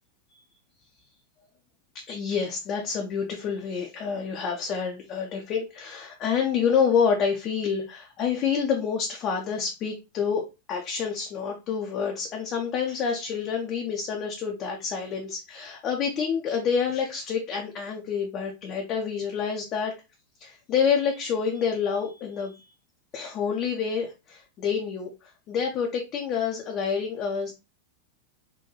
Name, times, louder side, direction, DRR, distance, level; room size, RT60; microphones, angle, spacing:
voice 1, 2.1-10.4 10.7-19.9 20.4-22.7 23.1-27.5, left 6 dB, 35° left, 0.6 m, -28 dB
3.8 x 2.6 x 2.8 m
figure-of-eight pair, 90°, 0 cm